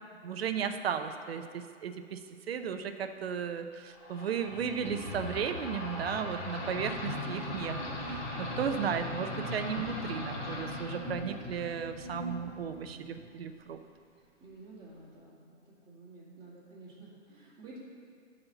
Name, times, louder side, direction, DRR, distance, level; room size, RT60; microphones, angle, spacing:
voice 1, 0.2-2.2 2.5-13.8, right 7 dB, 50° right, 8 dB, 0.7 m, -35 dB
sound 1, 4.0-13.3, left 1 dB, 35° left, 2.5 m, -39 dB
voice 2, 14.4-17.8, right 2 dB, 10° right, -8 dB, 2.3 m, -51 dB
11.0 x 4.4 x 6.8 m, 2.2 s
hypercardioid pair, 150°, 38 cm